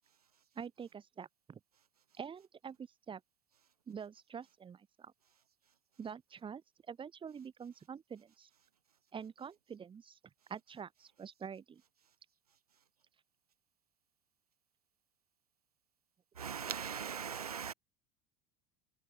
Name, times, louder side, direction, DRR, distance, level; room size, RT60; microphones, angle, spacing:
voice 1, 0.5-1.6 2.2-3.2 3.9-5.1 6.0-8.5 9.1-10.2 10.5-11.8, right 7 dB, 25° right, 4.4 m, -46 dB
voice 2, 16.4-17.7, right 7 dB, 85° right, 0.4 m, -39 dB
figure-of-eight pair, 75°, 19 cm